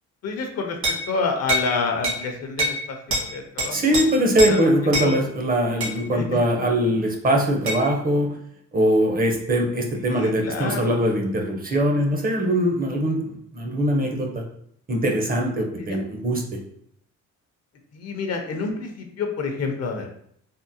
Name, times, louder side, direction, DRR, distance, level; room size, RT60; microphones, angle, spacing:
voice 1, 0.2-4.0 4.5-4.7 5.0-5.1 6.1-6.4 10.0-11.0 15.8-16.0 17.9-20.1, left 4 dB, 55° left, 3 dB, 0.6 m, -28 dB
sound 1, 0.8-1.1 1.5-1.7 2.0-2.2 2.6-2.8 3.1-3.3 3.6-4.0 4.4-4.6 4.9-5.1 5.8-6.0 7.7-7.8, right 1 dB, 65° right, 1.5 m, -24 dB
voice 2, 3.7-8.4 8.7-14.4 14.9-16.4, right 1 dB, 30° right, 2 dB, 0.6 m, -22 dB
3.6 x 2.0 x 2.7 m, 0.68 s
cardioid pair, 90°, 30 cm